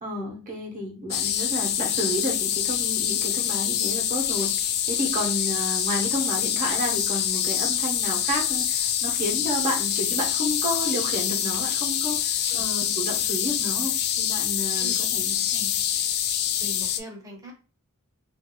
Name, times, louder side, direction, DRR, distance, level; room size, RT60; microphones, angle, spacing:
voice 1, 0.0-15.7, equal, 35° right, 0 dB, 1.0 m, -31 dB
sound 1, 1.1-17.0, left 10 dB, 45° left, 0.3 m, -26 dB
voice 2, 16.6-17.5, equal, 15° right, 0 dB, 0.9 m, -40 dB
3.1 x 2.6 x 2.9 m, 0.34 s
head